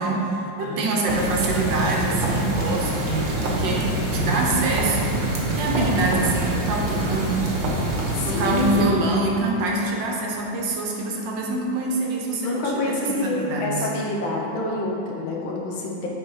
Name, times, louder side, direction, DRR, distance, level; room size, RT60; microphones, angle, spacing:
voice 1, 0.0-7.6 8.2-13.9, right 2 dB, 65° right, -1 dB, 1.3 m, -25 dB
voice 2, 0.6-1.0 8.1-8.9 12.4-16.1, left 1 dB, 70° left, -2 dB, 1.7 m, -27 dB
sound 1, 1.1-8.8, right 1 dB, 45° right, 1.2 m, -25 dB
8.0 x 4.5 x 4.7 m, 2.7 s
omnidirectional pair, 2.3 m